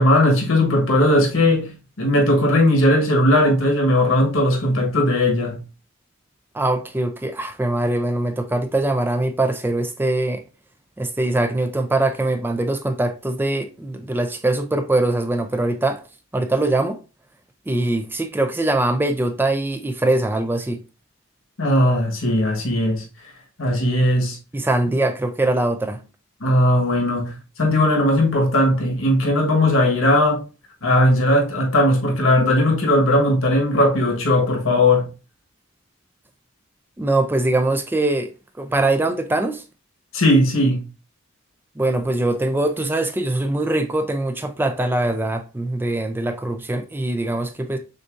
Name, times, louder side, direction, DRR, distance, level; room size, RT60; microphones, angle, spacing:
voice 1, 0.0-1.7 2.0-5.6 21.6-23.0 23.6-24.4 26.4-30.4 30.8-35.1 40.1-40.8, left 1 dB, 80° left, 1.3 m, -18 dB
voice 2, 6.5-10.4 11.0-16.0 16.3-17.0 17.7-20.8 24.5-26.0 37.0-38.3 38.6-39.6 41.8-47.8, right 2 dB, 10° right, 0.3 m, -22 dB
6.4 x 2.6 x 2.5 m
head